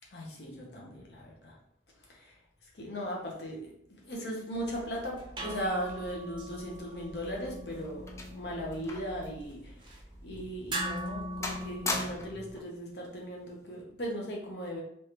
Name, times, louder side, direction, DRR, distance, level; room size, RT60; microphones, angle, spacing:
voice 1, 0.1-1.5 2.2-2.3 2.7-9.7 10.2-14.8, equal, 70° left, -2 dB, 1.0 m, -38 dB
sound 1, 4.6-12.6, right 1 dB, 25° right, 0.6 m, -41 dB
sound 2, 7.1-9.2 9.5-9.7 10.3-10.5 10.9-11.2 11.4-12.5 13.5-13.8, left 3 dB, 15° left, 0.4 m, -38 dB
3.3 x 3.2 x 3.0 m, 0.71 s
head